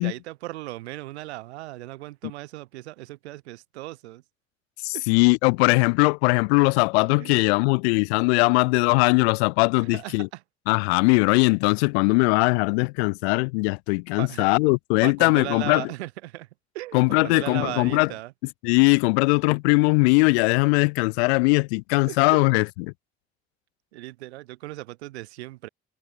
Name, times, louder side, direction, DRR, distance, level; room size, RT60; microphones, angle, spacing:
voice 1, 0.0-4.2 4.9-5.1 7.0-7.4 9.8-10.4 11.0-11.3 14.2-14.5 15.0-16.5 16.7-18.3 22.1-22.4 23.9-25.7, right 17 dB, 85° right, 2.8 m, -37 dB
voice 2, 4.8-10.3 10.7-15.9 16.9-18.1 18.6-22.9, left 29 dB, 80° left, 0.8 m, -20 dB
hypercardioid pair, 50°, 32 cm